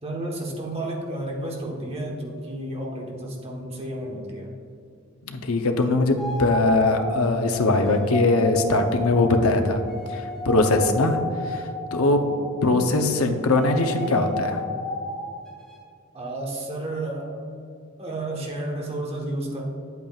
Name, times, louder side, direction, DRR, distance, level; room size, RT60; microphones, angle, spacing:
voice 1, 0.0-4.5 12.2-12.4 16.1-17.4 18.0-19.6, right 1 dB, 30° right, -1 dB, 1.2 m, -32 dB
voice 2, 5.3-9.8 10.1-11.2 11.5-11.6 11.9-12.2 12.6-14.6, left 2 dB, 75° left, 5 dB, 0.7 m, -21 dB
sound 1, 6.2-13.1 13.4-15.8, left 1 dB, 5° left, 1.2 m, -32 dB
8.8 x 8.2 x 2.4 m, 2.4 s
head